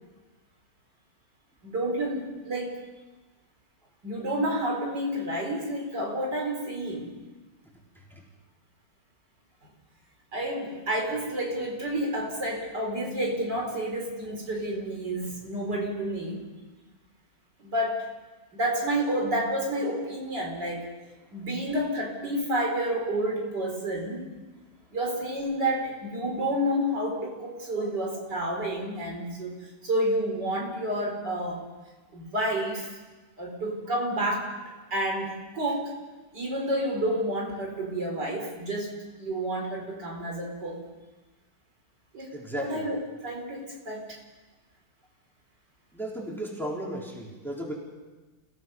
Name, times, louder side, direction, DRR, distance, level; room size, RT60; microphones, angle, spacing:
voice 1, 1.6-2.8 4.0-7.1 10.3-16.4 17.6-18.1 18.5-20.9 21.3-24.3 24.9-31.6 32.1-33.0 33.4-34.5 34.9-35.9 36.3-40.8 42.1-44.2, right 1 dB, 65° right, 0 dB, 4.7 m, -30 dB
voice 2, 42.3-42.8 45.9-47.7, right 1 dB, ahead, -3 dB, 4.1 m, -35 dB
29.5 x 17.0 x 5.5 m, 1.2 s
omnidirectional pair, 2.0 m